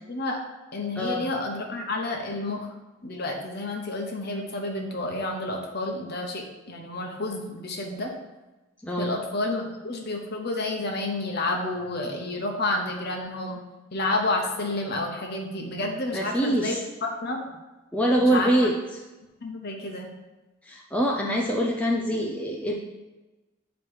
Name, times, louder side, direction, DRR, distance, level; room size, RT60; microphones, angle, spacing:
voice 1, 0.1-0.4 0.7-2.7 3.0-8.1 9.0-13.6 13.9-17.4 18.2-18.7 19.4-20.1, left 2 dB, 50° left, 2 dB, 0.8 m, -30 dB
voice 2, 1.0-1.3 8.8-9.2 16.1-16.8 17.9-19.0 20.6-22.7, right 1 dB, 5° left, -2 dB, 0.4 m, -24 dB
7.7 x 3.1 x 4.7 m, 1.1 s
head